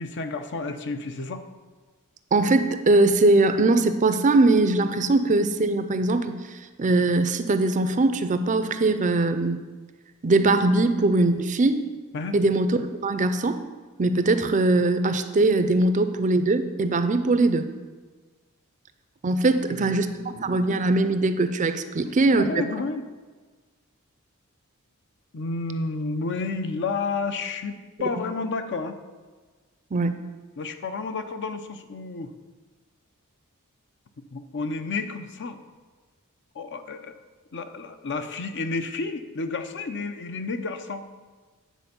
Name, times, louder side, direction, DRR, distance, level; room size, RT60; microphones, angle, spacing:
voice 1, 0.0-1.4 12.1-12.4 19.7-20.5 22.0-23.0 25.3-29.0 30.6-32.3 34.3-35.6 36.5-37.1 37.5-41.0, left 3 dB, 55° left, 8 dB, 0.6 m, -31 dB
voice 2, 2.3-6.3 6.8-9.6 10.2-11.8 12.3-13.6 14.0-17.6 19.2-20.1 20.4-22.6 29.9-30.1, right 2 dB, 35° right, 10 dB, 0.5 m, -21 dB
9.2 x 4.4 x 6.9 m, 1.4 s
head